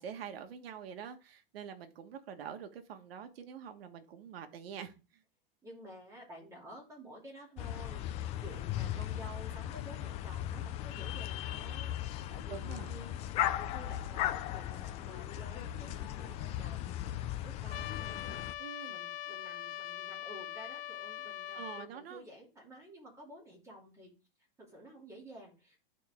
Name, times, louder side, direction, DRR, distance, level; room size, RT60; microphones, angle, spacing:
voice 1, 0.0-4.9 12.5-12.9 18.6-19.0 21.5-22.2, right 8 dB, 85° right, 7 dB, 1.6 m, -45 dB
voice 2, 5.6-24.1 24.6-25.8, right 1 dB, 10° right, -3 dB, 2.9 m, -52 dB
sound 1, 7.6-18.5, left 12 dB, 20° left, 0.4 m, -37 dB
Trumpet, 17.7-21.9, left 11 dB, 75° left, 0.7 m, -42 dB
11.5 x 4.5 x 3.6 m, 0.31 s
supercardioid pair, 155°, 29 cm